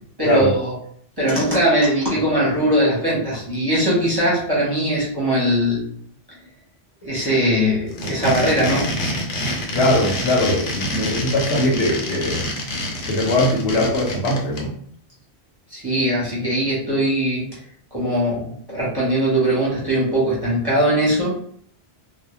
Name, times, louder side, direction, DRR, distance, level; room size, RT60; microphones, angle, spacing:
voice 1, 0.2-0.7 1.2-5.8 7.0-8.9 15.7-17.5 17.9-21.4, equal, 25° right, -7 dB, 0.6 m, -20 dB
sound 1, 7.9-14.6, left 1 dB, 85° left, 0.9 m, -26 dB
voice 2, 9.7-12.5 13.1-14.7, left 1 dB, 70° left, -1 dB, 0.8 m, -21 dB
2.1 x 2.1 x 2.9 m, 0.62 s
omnidirectional pair, 1.2 m